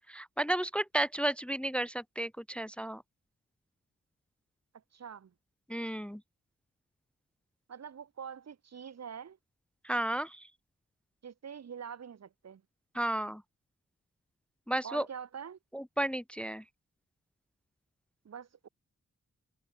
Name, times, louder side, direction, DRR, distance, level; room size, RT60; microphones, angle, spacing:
voice 1, 0.1-3.0 5.7-6.2 9.8-10.5 12.9-13.4 14.7-15.1 15.7-16.6, right 1 dB, 5° left, 0.6 m, -33 dB
voice 2, 4.9-5.3 7.7-9.4 11.2-12.6 14.8-15.6 18.2-18.7, right 7 dB, 60° right, 1.0 m, -45 dB
cardioid pair, 70°, 30 cm